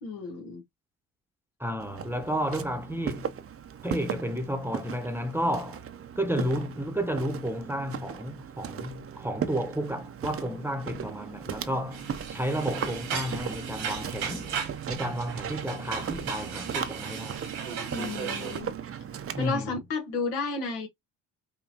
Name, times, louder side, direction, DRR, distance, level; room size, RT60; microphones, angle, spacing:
voice 1, 0.0-0.6 17.9-18.7 19.4-20.9, left 3 dB, 75° left, 1.4 m, -32 dB
voice 2, 1.6-3.4 3.8-5.8 6.2-14.5 14.9-17.4 19.3-19.7, equal, 5° right, 0.9 m, -32 dB
Walk footsteps, 1.8-19.5, right 8 dB, 35° right, 0.7 m, -38 dB
sound 1, 11.9-18.6, right 6 dB, 80° right, 1.8 m, -36 dB
5.4 x 2.3 x 2.7 m
hypercardioid pair, 55°, 41 cm